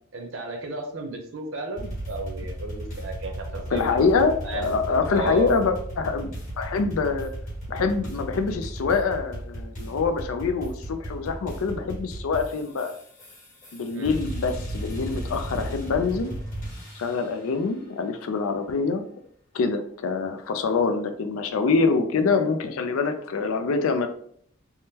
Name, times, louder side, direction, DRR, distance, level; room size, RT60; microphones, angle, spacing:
voice 1, 0.1-4.0 4.4-5.5 13.9-14.2, right 2 dB, 65° right, 3 dB, 0.7 m, -34 dB
sound 1, 1.8-17.3, right 1 dB, 35° left, 1.5 m, -35 dB
voice 2, 3.7-7.3 7.7-12.9 13.7-16.3 17.0-19.0 19.5-24.1, left 4 dB, 80° left, 7 dB, 0.4 m, -25 dB
3.5 x 2.1 x 2.8 m, 0.63 s
head